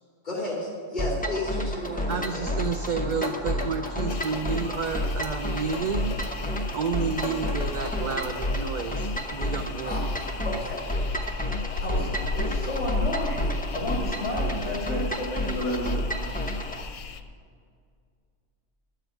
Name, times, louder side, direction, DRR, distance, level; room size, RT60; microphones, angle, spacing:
voice 1, 0.2-2.5, left 1 dB, 40° left, -5 dB, 3.2 m, -32 dB
sound 1, 1.0-16.8, equal, 10° left, 0.7 m, -30 dB
sound 2, 1.8-8.4, left 2 dB, 25° left, 1.2 m, -40 dB
voice 2, 2.1-6.2 6.7-10.0, right 5 dB, 50° right, 5 dB, 0.7 m, -30 dB
sound 3, 4.1-17.2, left 4 dB, 90° left, 1.1 m, -36 dB
voice 3, 9.8-10.9 11.1-11.4 11.8-16.4, equal, 60° left, -2 dB, 2.2 m, -32 dB
11.5 x 7.7 x 8.1 m, 2.1 s
omnidirectional pair, 1.2 m